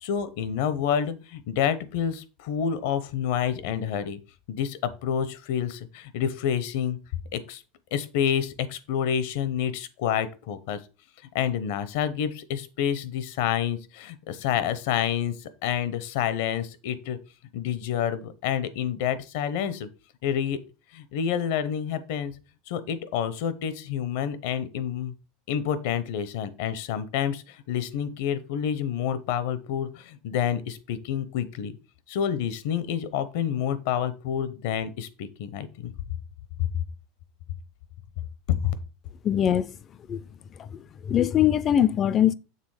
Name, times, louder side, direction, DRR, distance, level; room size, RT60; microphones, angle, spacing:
voice 1, 0.0-4.2 4.5-7.0 7.3-7.6 7.9-10.8 11.3-17.2 17.5-19.9 20.2-20.6 20.9-22.3 22.7-25.1 25.5-31.7 32.1-35.9 36.6-36.7 38.5-38.8, left 9 dB, 65° left, 0.7 m, -28 dB
voice 2, 39.2-39.7 40.1-40.2 40.6-40.8 41.1-42.3, left 10 dB, 25° left, 0.3 m, -22 dB
6.7 x 3.5 x 4.8 m
supercardioid pair, 155°, 0 cm